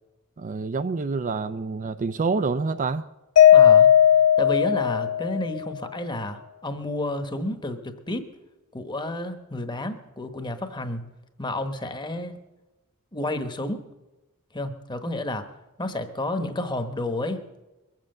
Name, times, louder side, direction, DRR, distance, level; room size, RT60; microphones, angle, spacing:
voice 1, 0.4-3.0, right 4 dB, 35° right, 11 dB, 0.4 m, -27 dB
Mallet percussion, 3.4-5.6, left 10 dB, 75° left, 0.5 m, -16 dB
voice 2, 3.5-3.9 4.4-8.3 8.7-11.0 11.4-12.3 13.1-13.8 14.5-15.5 15.8-17.4, left 1 dB, 20° left, 8 dB, 1.1 m, -30 dB
22.0 x 7.6 x 7.8 m, 1.0 s
head